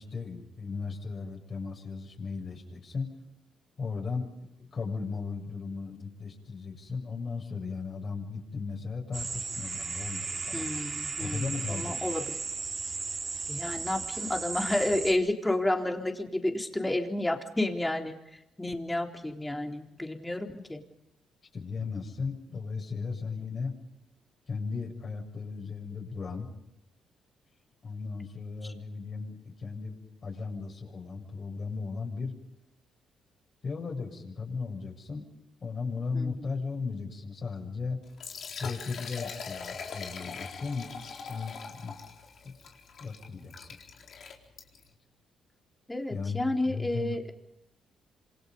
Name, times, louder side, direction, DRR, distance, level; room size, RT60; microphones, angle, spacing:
voice 1, 0.0-3.1 3.8-10.7 11.2-12.1 21.5-23.7 24.5-26.5 27.8-30.0 30.2-32.3 33.6-35.3 35.6-38.0 38.6-40.9 41.3-41.9 42.4-42.6 43.0-43.8 46.1-47.2, left 4 dB, 45° left, 1 dB, 7.5 m, -36 dB
sound 1, 9.1-15.1, right 4 dB, 40° right, 4.2 m, -35 dB
voice 2, 10.5-12.4 13.5-20.8 36.1-36.5 45.9-47.3, left 1 dB, 10° left, 3 dB, 3.8 m, -31 dB
Liquid, 38.0-44.9, left 5 dB, 60° left, 4.2 m, -42 dB
27.5 x 27.0 x 5.5 m, 0.87 s
cardioid pair, 90°, 0 cm